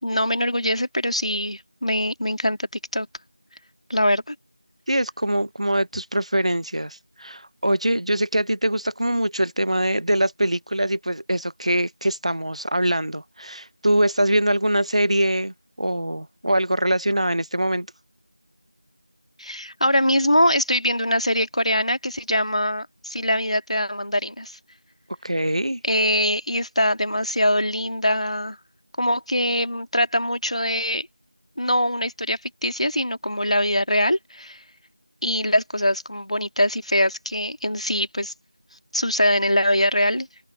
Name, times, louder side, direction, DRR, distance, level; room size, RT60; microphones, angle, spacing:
voice 1, 0.0-3.1 3.9-4.4 19.4-24.6 25.8-28.6 29.0-31.1 31.6-34.6 35.2-38.3 38.9-40.5, left 1 dB, 75° left, 2.1 m, -23 dB
voice 2, 4.9-17.9 25.2-25.8, right 1 dB, 70° right, 0.8 m, -23 dB
open air
figure-of-eight pair, 180°, 3 cm